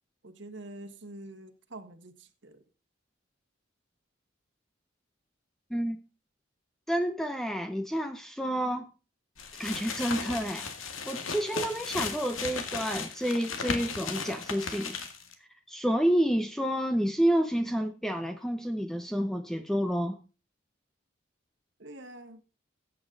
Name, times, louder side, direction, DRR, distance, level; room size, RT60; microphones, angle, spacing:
voice 1, 0.2-2.6 21.8-22.4, right 1 dB, 65° right, 1.5 m, -46 dB
voice 2, 6.9-8.9 9.6-10.7 11.1-15.0 15.7-20.2, equal, ahead, 0.7 m, -29 dB
sound 1, 9.4-15.3, left 5 dB, 85° left, 2.1 m, -36 dB
15.5 x 8.4 x 3.9 m
head